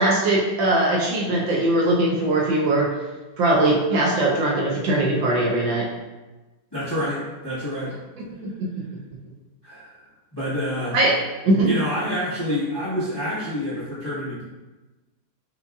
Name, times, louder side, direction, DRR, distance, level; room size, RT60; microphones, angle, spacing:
voice 1, 0.0-2.9 3.4-5.9 8.2-8.8 10.9-11.2 11.4-11.7, right 1 dB, 75° right, -3 dB, 1.3 m, -21 dB
voice 2, 6.7-7.9 9.6-10.0 10.3-10.9 11.6-14.4, equal, 20° left, -12 dB, 0.8 m, -27 dB
5.3 x 2.4 x 2.3 m, 1.2 s
omnidirectional pair, 2.3 m